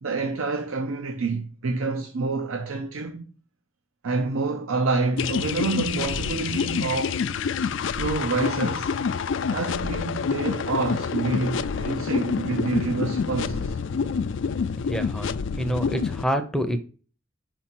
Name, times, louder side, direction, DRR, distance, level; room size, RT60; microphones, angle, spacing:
voice 1, 0.0-3.2 4.0-7.2 7.9-8.9 9.5-13.8, right 3 dB, 80° right, 0.7 m, -28 dB
sound 1, 5.2-16.2, left 5 dB, 60° left, 0.4 m, -27 dB
voice 2, 14.9-16.8, equal, 5° left, 0.6 m, -27 dB
5.4 x 4.3 x 5.9 m
head